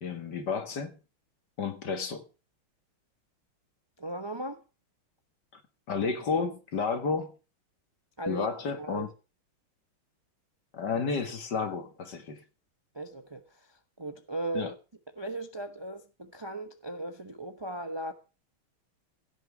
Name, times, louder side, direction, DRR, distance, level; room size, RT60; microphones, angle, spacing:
voice 1, 0.0-1.0 1.6-2.2 5.5-5.6 5.9-7.3 8.3-9.1 10.7-12.4 14.5-14.7, left 5 dB, 55° left, 2.3 m, -31 dB
voice 2, 4.0-4.6 8.2-8.5 8.7-9.1 12.9-13.7 14.0-14.7 15.2-18.1, right 2 dB, 20° right, 0.6 m, -37 dB
16.0 x 6.1 x 7.2 m
omnidirectional pair, 2.3 m